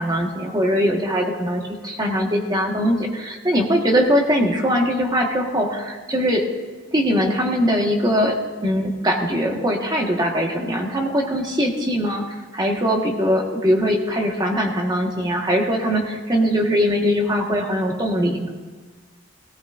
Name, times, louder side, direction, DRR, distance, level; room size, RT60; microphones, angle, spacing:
voice 1, 0.0-6.4 6.9-18.5, equal, 20° right, 1 dB, 1.4 m, -21 dB
17.5 x 17.0 x 2.5 m, 1.4 s
head